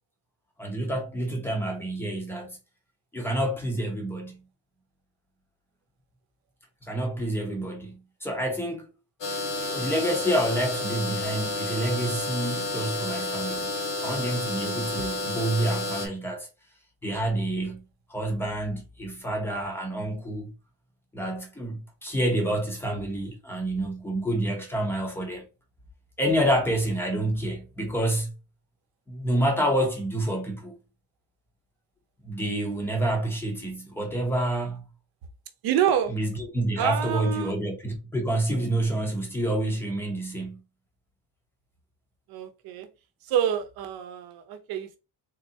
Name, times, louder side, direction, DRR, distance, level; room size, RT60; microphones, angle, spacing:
voice 1, 0.6-2.6 3.1-4.4 6.8-8.9 9.7-13.7 14.0-16.5 17.0-17.8 18.1-20.5 21.1-25.5 26.2-28.3 29.1-30.7 32.2-34.9 36.1-40.6, right 1 dB, 5° left, 0.8 m, -28 dB
sound 1, 9.2-16.1, left 2 dB, 45° left, 1.2 m, -31 dB
voice 2, 35.6-36.1 36.8-37.6 42.3-42.9 43.2-45.0, right 9 dB, 60° right, 0.8 m, -27 dB
3.8 x 3.3 x 2.7 m
cardioid pair, 175°, 42 cm